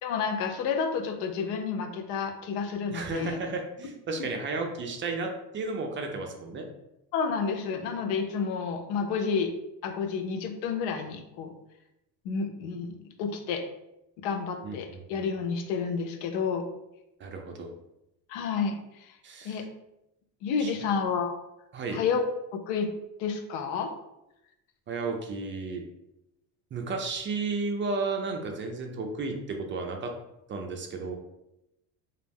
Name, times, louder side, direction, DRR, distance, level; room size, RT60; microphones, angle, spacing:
voice 1, 0.0-3.4 7.1-9.5 9.8-11.5 12.2-13.6 14.2-16.6 18.3-19.1 19.4-19.7 20.4-21.4 21.9-22.2 22.5-22.9 23.2-23.9, left 5 dB, 85° left, 6 dB, 0.5 m, -30 dB
voice 2, 2.9-6.7 14.6-15.2 17.2-17.7 19.2-19.6 20.6-20.7 21.7-22.0 24.9-25.8 26.7-30.1 30.5-31.1, right 3 dB, 30° right, 3 dB, 0.4 m, -33 dB
2.4 x 2.0 x 3.3 m, 0.88 s
supercardioid pair, 100°, 41 cm